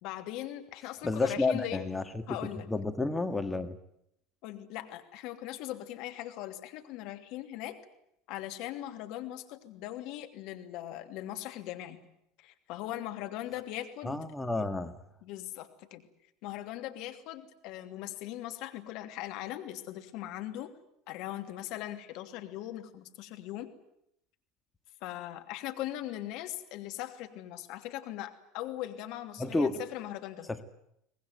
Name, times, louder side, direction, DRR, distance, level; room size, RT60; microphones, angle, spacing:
voice 1, 0.0-1.8 2.3-2.7 4.4-7.8 8.3-12.0 12.4-14.2 15.2-16.0 16.4-20.7 21.1-23.7 25.0-30.5, left 14 dB, 60° left, 7 dB, 2.8 m, -40 dB
voice 2, 1.0-2.4 2.7-3.8 14.0-15.0 29.4-29.8 30.5-30.6, left 3 dB, 10° left, 8 dB, 1.8 m, -31 dB
24.0 x 19.5 x 9.5 m, 0.78 s
hypercardioid pair, 80°, 0 cm